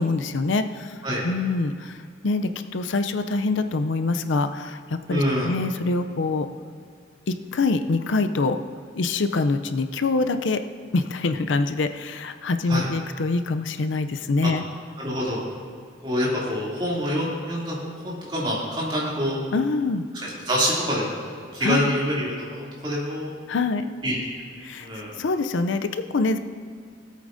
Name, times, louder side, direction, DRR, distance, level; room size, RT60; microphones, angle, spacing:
voice 1, 0.0-1.0 1.2-6.5 7.3-8.6 8.9-10.6 10.9-14.6 19.5-20.1 21.6-21.9 23.5-23.9 24.6-24.9 25.2-26.4, left 3 dB, 80° left, 9 dB, 0.5 m, -25 dB
voice 2, 5.1-5.5 12.7-12.9 14.4-14.5 15.0-15.4 16.0-17.8 18.0-19.4 20.2-23.3 24.0-24.2 24.8-25.1, equal, 25° right, -6 dB, 2.8 m, -26 dB
18.0 x 8.4 x 2.7 m, 2.2 s
head